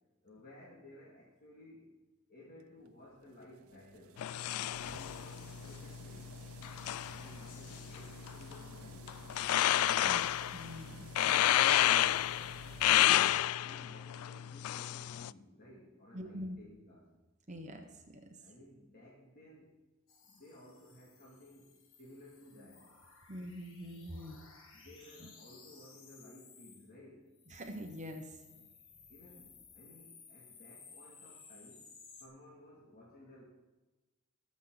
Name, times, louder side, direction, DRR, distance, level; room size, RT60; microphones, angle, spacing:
voice 1, 0.2-1.9 2.3-6.3 7.1-9.3 12.3-13.1 13.6-17.1 18.4-19.7 20.2-22.9 24.7-27.3 29.1-31.9 32.2-33.4, left 1 dB, 45° left, -5 dB, 2.4 m, -56 dB
sound 1, 2.7-13.0, right 7 dB, 75° right, 0.5 m, -54 dB
sound 2, 4.2-15.3, left 13 dB, 90° left, 0.3 m, -31 dB
voice 2, 10.0-11.1 16.1-16.6 17.5-18.2 23.3-24.4 25.2-25.3 27.5-28.4, equal, 35° right, 4 dB, 1.1 m, -44 dB
sound 3, 20.1-26.9 27.3-32.3, left 5 dB, 65° left, 2.0 m, -58 dB
21.0 x 7.4 x 4.0 m, 1.1 s
head